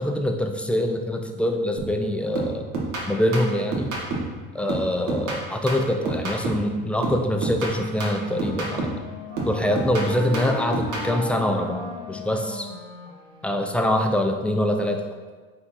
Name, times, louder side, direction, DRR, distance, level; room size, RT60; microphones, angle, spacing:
voice 1, 0.0-2.7 3.1-3.9 4.5-8.9 9.4-12.7 13.4-15.0, left 1 dB, 5° left, 4 dB, 0.4 m, -24 dB
sound 1, 1.8-2.0 2.4-4.4 4.7-6.7 7.0-9.1 9.4-11.1, right 2 dB, 60° right, 1.3 m, -29 dB
Wind instrument woodwind instrument, 7.8-13.9, left 2 dB, 10° right, 1.2 m, -37 dB
4.8 x 2.7 x 3.9 m, 1.4 s
supercardioid pair, 80°, 34 cm